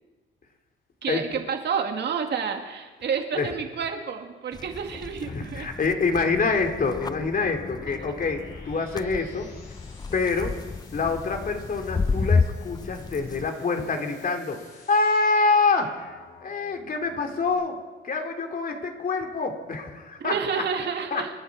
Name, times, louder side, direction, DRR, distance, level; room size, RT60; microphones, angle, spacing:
voice 1, 1.0-5.7 7.9-8.0 20.2-21.3, right 6 dB, 60° right, 4 dB, 2.3 m, -29 dB
sound 1, 4.5-13.5, left 4 dB, 20° left, 0.5 m, -31 dB
voice 2, 5.3-9.5 10.1-10.6 10.9-14.6 14.9-16.0 16.4-17.7 18.0-20.6 21.1-21.2, left 4 dB, 45° left, 4 dB, 2.7 m, -26 dB
sound 2, 5.6-17.5, left 3 dB, 75° left, 6.6 m, -52 dB
27.5 x 11.0 x 4.8 m, 1.3 s
cardioid pair, 90°, 20 cm